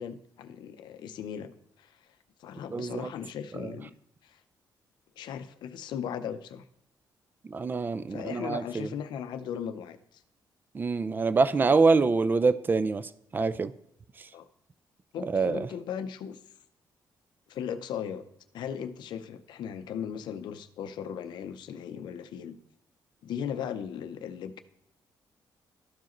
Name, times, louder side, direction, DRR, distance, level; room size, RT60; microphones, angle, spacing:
voice 1, 0.0-1.5 1.8-1.9 2.4-3.9 4.2-4.4 5.2-6.6 8.1-10.2 14.3-14.5 15.1-16.4 17.5-18.2 18.5-22.6 23.2-24.6, left 8 dB, 75° left, 10 dB, 0.5 m, -37 dB
voice 2, 2.7-3.1 3.6-3.7 7.5-8.9 10.7-13.7 15.3-15.7, right 4 dB, 25° right, 15 dB, 0.4 m, -25 dB
13.0 x 4.8 x 3.0 m, 0.78 s
cardioid pair, 105°, 8 cm